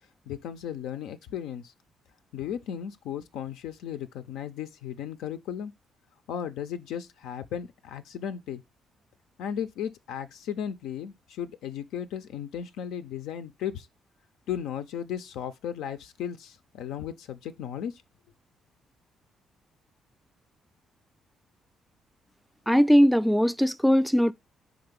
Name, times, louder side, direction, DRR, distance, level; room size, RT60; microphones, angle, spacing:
voice 1, 0.3-1.7 2.3-5.7 6.3-8.6 9.4-13.9 14.5-18.0, left 9 dB, 90° left, 0.5 m, -35 dB
voice 2, 22.7-24.3, equal, ahead, 0.3 m, -20 dB
4.8 x 3.9 x 5.1 m
cardioid pair, 90°, 0 cm